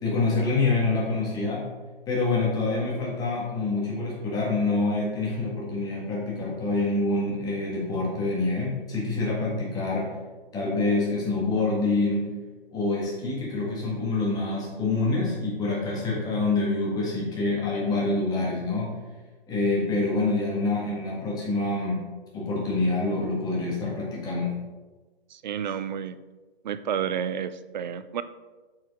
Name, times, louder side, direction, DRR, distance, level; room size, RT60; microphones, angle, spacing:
voice 1, 0.0-1.6 2.1-10.1 10.5-12.3 12.7-18.9 19.5-22.0 22.3-24.5, left 3 dB, 15° left, -4 dB, 1.7 m, -26 dB
voice 2, 25.3-26.2 26.6-28.2, right 8 dB, 50° right, 13 dB, 0.5 m, -30 dB
8.5 x 4.8 x 3.6 m, 1.3 s
hypercardioid pair, 140°, 30 cm